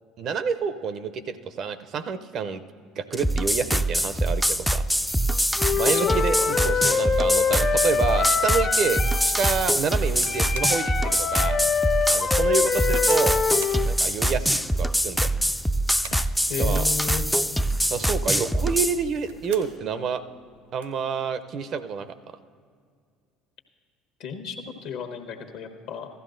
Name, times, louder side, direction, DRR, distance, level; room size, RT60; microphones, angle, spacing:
voice 1, 0.2-2.6 3.0-4.9 5.8-11.6 12.1-13.4 13.9-15.3 16.6-16.9 17.9-20.2 20.7-22.2, right 6 dB, 50° right, 12 dB, 0.5 m, -28 dB
sound 1, 3.1-19.0, equal, ahead, 0.3 m, -24 dB
Wind instrument woodwind instrument, 5.6-9.4 10.2-13.9, left 6 dB, 40° left, 0.6 m, -25 dB
voice 2, 5.7-6.5 16.5-17.3 24.2-26.1, left 6 dB, 65° left, 5 dB, 1.1 m, -33 dB
sound 2, 10.2-10.8 11.3-11.4 11.9-12.1 13.0-13.3 13.6-13.8 14.9-15.3 15.8-16.3 17.5-17.9 19.1-19.8 20.2-20.3 20.5-21.0 21.8-22.1, right 5 dB, 85° right, 0.9 m, -43 dB
15.5 x 13.0 x 2.6 m, 2.1 s
hypercardioid pair, 65°, 0 cm